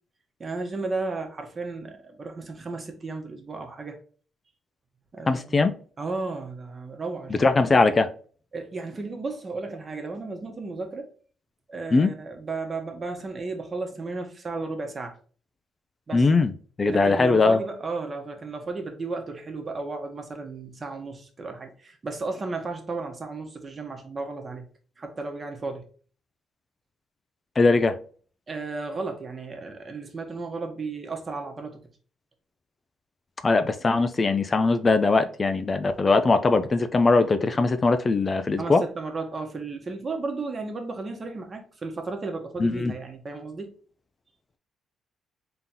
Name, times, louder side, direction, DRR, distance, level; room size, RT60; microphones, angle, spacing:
voice 1, 0.4-4.0 5.1-5.7 6.0-7.5 8.5-11.1 11.7-15.2 16.1-16.3 16.9-24.7 25.0-25.9 28.5-31.8 38.6-43.7, right 3 dB, 35° right, 1.1 m, -34 dB
voice 2, 5.3-5.7 7.4-8.1 11.9-12.1 16.1-16.5 16.8-17.6 27.6-28.0 33.4-38.8 42.6-42.9, left 3 dB, 30° left, 0.4 m, -21 dB
3.8 x 2.9 x 3.7 m
cardioid pair, 90°, 0 cm